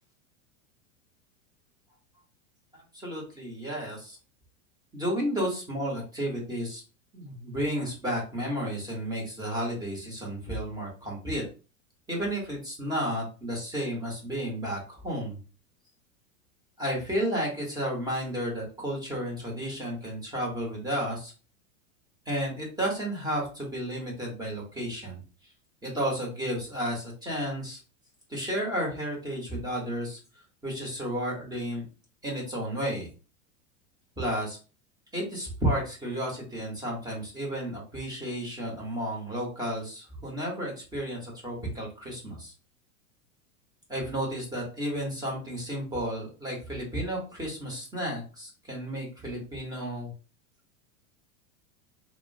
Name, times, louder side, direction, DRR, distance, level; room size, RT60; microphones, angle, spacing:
voice 1, 2.9-4.2 4.9-6.8 7.1-11.4 12.1-15.4 16.8-21.3 22.3-25.2 25.8-27.8 28.3-30.2 30.6-31.8 32.2-33.1 34.2-34.6 35.1-42.5 43.9-50.1, equal, 10° right, -2 dB, 0.9 m, -32 dB
2.8 x 2.1 x 2.6 m, 0.35 s
supercardioid pair, 135°, 41 cm